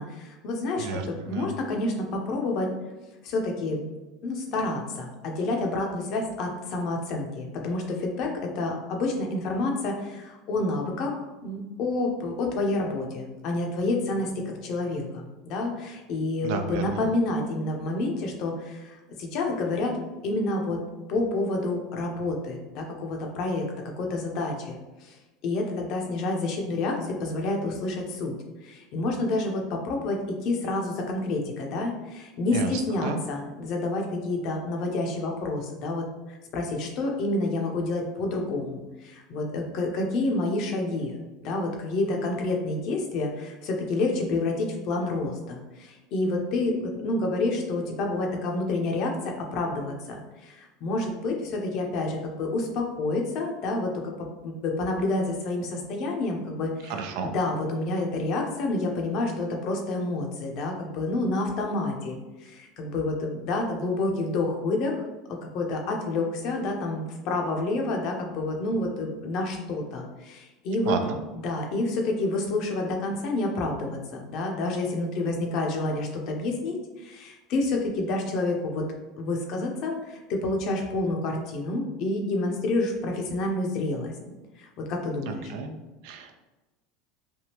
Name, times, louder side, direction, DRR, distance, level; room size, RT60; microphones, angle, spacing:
voice 1, 0.0-2.7 3.2-3.8 4.2-20.0 20.2-20.8 21.1-23.6 24.0-25.2 25.4-28.3 28.6-41.1 41.4-65.0 65.5-71.0 71.4-78.8 79.2-84.1 84.6-85.5, left 2 dB, 60° left, 1 dB, 0.7 m, -29 dB
voice 2, 0.8-1.5 16.4-16.8 32.5-32.7 33.0-33.2 56.8-57.4 70.9-71.2 85.3-85.7 86.0-86.3, right 5 dB, 70° right, 5 dB, 0.4 m, -31 dB
3.4 x 2.3 x 2.9 m, 1.1 s
hypercardioid pair, 95°, 0 cm